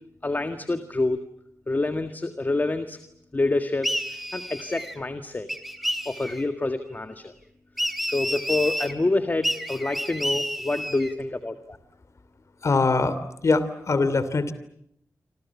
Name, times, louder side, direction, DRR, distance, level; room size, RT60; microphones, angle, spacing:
voice 1, 0.2-1.2 1.7-3.0 3.3-3.9 4.3-5.5 6.1-7.3 8.0-11.8, left 2 dB, 30° left, 8 dB, 1.8 m, -27 dB
sound 1, 3.8-5.0 5.5-6.4 7.8-8.9 9.4-11.1, equal, ahead, 3.1 m, -30 dB
voice 2, 12.6-13.2 13.4-14.5, left 3 dB, 55° left, 13 dB, 3.0 m, -22 dB
27.5 x 27.0 x 7.3 m, 0.73 s
wide cardioid pair, 95°, 6 cm